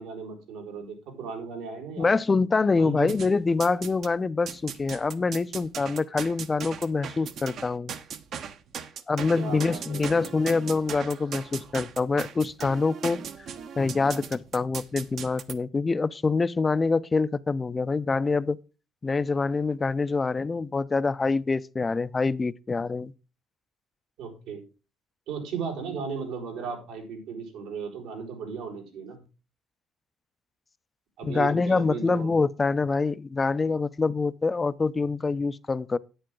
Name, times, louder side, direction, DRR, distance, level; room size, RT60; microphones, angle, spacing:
voice 1, 0.0-2.1 2.7-3.1 9.4-10.3 24.2-24.6 25.3-29.2 31.2-32.3, right 5 dB, 90° right, 4.7 m, -36 dB
voice 2, 2.0-7.9 9.1-13.2 13.8-18.6 19.0-23.1 31.2-36.0, left 4 dB, 25° left, 0.5 m, -25 dB
sound 1, 3.1-4.1 4.5-15.5, right 7 dB, 60° right, 0.9 m, -38 dB
10.5 x 8.8 x 3.8 m
cardioid pair, 105°, 0 cm